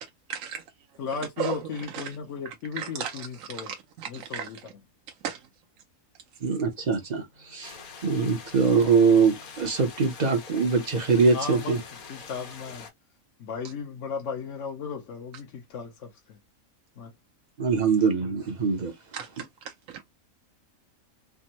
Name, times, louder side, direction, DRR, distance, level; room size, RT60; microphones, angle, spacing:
voice 1, 0.3-0.6 1.4-2.1 2.5-4.5 5.2-5.4 19.1-20.0, right 8 dB, 75° right, 0.9 m, -36 dB
voice 2, 1.0-3.7 4.1-4.6 11.3-11.8 12.1-12.9 13.4-16.4 17.0-17.1, left 5 dB, 65° left, 1.0 m, -35 dB
voice 3, 6.4-7.8 8.0-11.8 17.6-18.9, right 5 dB, 45° right, 0.6 m, -23 dB
sound 1, 7.6-12.9, left 5 dB, 85° left, 1.4 m, -44 dB
3.4 x 2.0 x 2.7 m
omnidirectional pair, 1.5 m